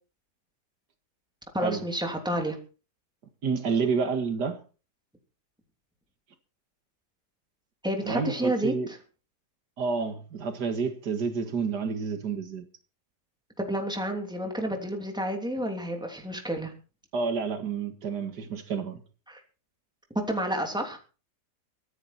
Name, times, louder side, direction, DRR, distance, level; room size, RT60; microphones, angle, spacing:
voice 1, 1.5-2.6 7.8-8.7 13.6-16.7 19.3-19.4 20.3-21.0, right 1 dB, ahead, 3.0 m, -30 dB
voice 2, 3.4-4.6 8.0-8.9 9.8-12.7 17.1-19.0, right 5 dB, 80° right, 2.3 m, -29 dB
23.5 x 10.0 x 4.4 m
omnidirectional pair, 1.7 m